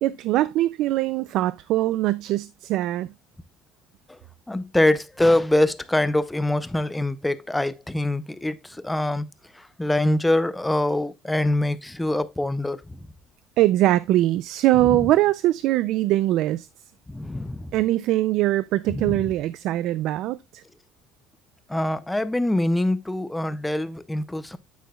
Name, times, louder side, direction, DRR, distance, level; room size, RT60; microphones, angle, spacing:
voice 1, 0.0-3.1 13.6-16.7 17.7-20.6, right 15 dB, 55° right, 0.4 m, -22 dB
voice 2, 4.5-9.3 9.6-13.0 14.8-15.0 17.1-17.7 18.9-19.3 21.7-24.6, left 1 dB, 5° left, 0.5 m, -24 dB
9.4 x 8.2 x 2.3 m
cardioid pair, 170°, 0 cm